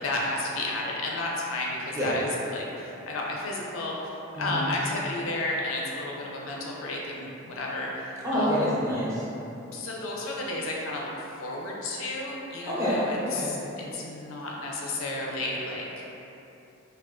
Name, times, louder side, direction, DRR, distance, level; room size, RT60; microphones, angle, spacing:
voice 1, 0.0-4.0 4.4-8.8 9.7-11.1 11.4-16.0, left 2 dB, 70° left, -2 dB, 0.4 m, -32 dB
voice 2, 8.2-9.2 12.7-13.5, equal, 15° right, -10 dB, 0.7 m, -27 dB
2.3 x 2.3 x 3.6 m, 3.0 s
head